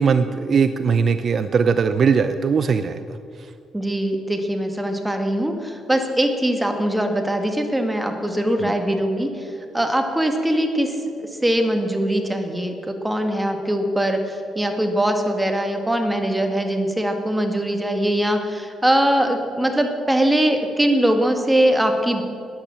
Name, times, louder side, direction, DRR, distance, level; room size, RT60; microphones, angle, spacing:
voice 1, 0.0-3.0 8.6-8.7, right 6 dB, 50° right, 10 dB, 0.6 m, -19 dB
voice 2, 3.7-22.2, right 1 dB, 10° right, 4 dB, 1.8 m, -22 dB
13.5 x 10.0 x 7.4 m, 2.4 s
cardioid pair, 90°, 0 cm